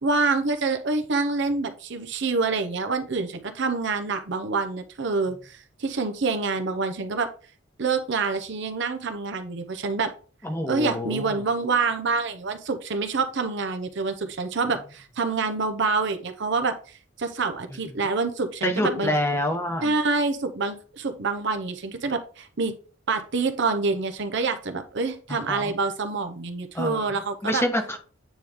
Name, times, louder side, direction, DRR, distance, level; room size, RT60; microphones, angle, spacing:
voice 1, 0.0-7.3 7.8-10.1 10.7-16.7 17.2-19.1 19.8-22.8 23.1-27.6, right 4 dB, 65° right, 8 dB, 0.8 m, -26 dB
voice 2, 10.4-11.4 18.6-19.9 25.3-25.7 26.7-27.1 27.4-28.0, left 1 dB, 15° left, 4 dB, 1.0 m, -27 dB
9.1 x 3.2 x 3.5 m, 0.38 s
head